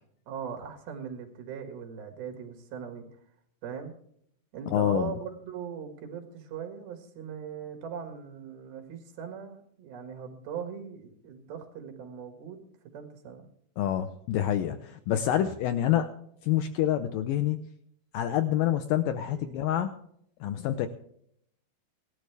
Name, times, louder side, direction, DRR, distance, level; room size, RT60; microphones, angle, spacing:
voice 1, 0.3-3.1 3.6-3.9 4.5-12.6 12.9-13.5 19.3-19.6, right 7 dB, 75° right, 5 dB, 3.8 m, -40 dB
voice 2, 4.7-5.1 13.8-16.1 16.4-17.6 18.1-20.0 20.4-20.9, left 11 dB, 75° left, 8 dB, 2.1 m, -27 dB
18.0 x 13.0 x 3.4 m, 0.68 s
omnidirectional pair, 4.4 m